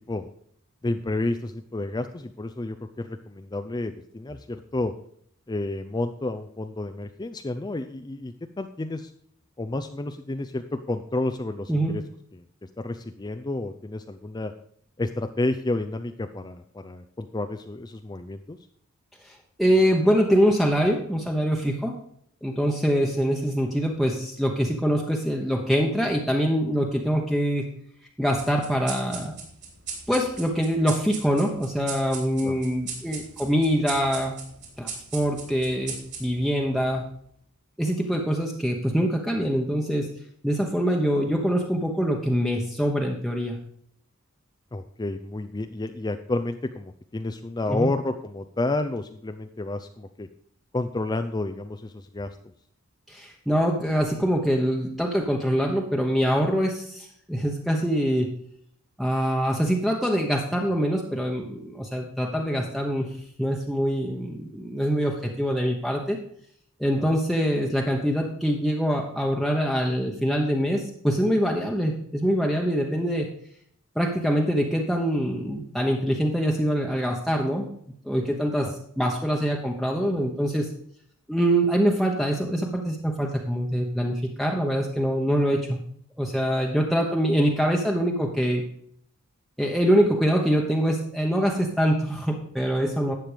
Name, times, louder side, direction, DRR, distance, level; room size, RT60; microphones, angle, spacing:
voice 1, 0.8-4.9 5.5-9.1 9.6-12.0 12.3-14.5 15.0-18.6 32.4-32.6 44.7-50.3 50.7-52.4 67.0-67.1 78.6-78.7, left 2 dB, 20° left, 8 dB, 0.5 m, -30 dB
voice 2, 19.2-21.9 22.4-27.6 28.2-29.3 30.1-34.4 34.8-37.0 37.8-40.1 40.4-43.6 47.7-47.9 53.1-58.3 59.0-63.1 63.4-66.2 66.8-73.3 74.0-77.6 78.0-78.7 79.0-80.7 81.3-85.8 86.2-88.6 89.6-93.1, equal, ahead, -1 dB, 1.0 m, -24 dB
sound 1, 28.4-37.3, right 5 dB, 50° right, 3.5 m, -39 dB
12.0 x 7.8 x 5.1 m, 0.65 s
head